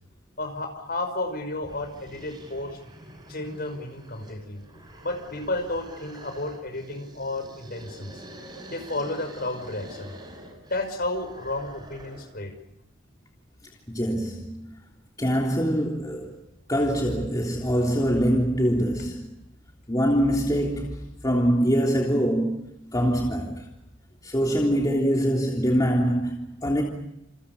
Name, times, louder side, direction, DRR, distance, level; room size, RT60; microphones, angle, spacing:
voice 1, 0.4-2.8 3.3-8.2 8.7-10.1 10.7-12.5, left 2 dB, 50° left, 5.8 m, -32 dB
sound 1, 1.6-12.4, right 1 dB, 20° right, 5.9 m, -46 dB
voice 2, 13.9-14.6 15.2-16.3 16.7-19.2 19.9-22.6 22.9-23.7 24.2-26.8, equal, 20° left, 3.3 m, -24 dB
29.5 x 28.5 x 5.5 m
head